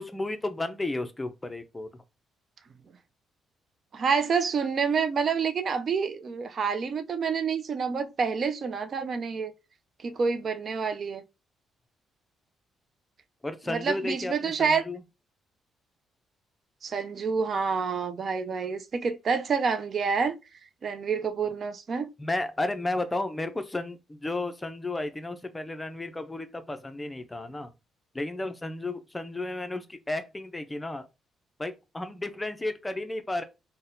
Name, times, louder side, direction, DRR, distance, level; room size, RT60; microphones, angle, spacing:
voice 1, 0.0-1.9 13.4-15.0 22.2-27.7 28.1-31.1 31.6-33.4, left 2 dB, 15° left, 0.5 m, -33 dB
voice 2, 3.9-9.5 10.0-11.2 13.7-14.8 16.8-20.4 20.8-22.1, right 5 dB, 50° right, 0.3 m, -28 dB
3.9 x 2.1 x 2.6 m
cardioid pair, 90°, 0 cm